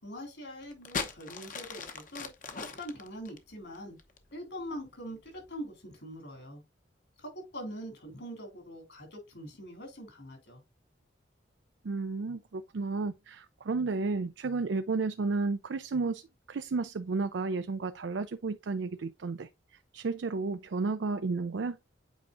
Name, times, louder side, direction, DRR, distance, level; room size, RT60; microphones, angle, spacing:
voice 1, 0.0-4.0 4.3-6.6 7.2-10.6, equal, 70° left, 3.7 m, -43 dB
sound 1, 0.6-4.3 5.1-5.5, left 4 dB, 45° left, 0.9 m, -39 dB
voice 2, 11.8-16.2 16.5-19.5 19.9-21.8, right 4 dB, 75° right, 0.4 m, -32 dB
8.3 x 4.8 x 2.5 m
head